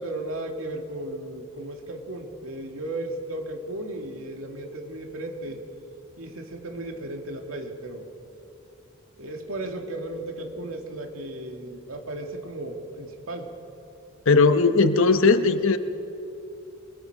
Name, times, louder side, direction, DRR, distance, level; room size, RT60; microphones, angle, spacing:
voice 1, 0.0-5.6 6.2-8.1 9.2-13.5, right 1 dB, 80° right, 2 dB, 2.3 m, -35 dB
voice 2, 14.3-15.8, left 4 dB, 70° left, 10 dB, 0.9 m, -18 dB
27.0 x 22.0 x 4.9 m, 2.8 s
head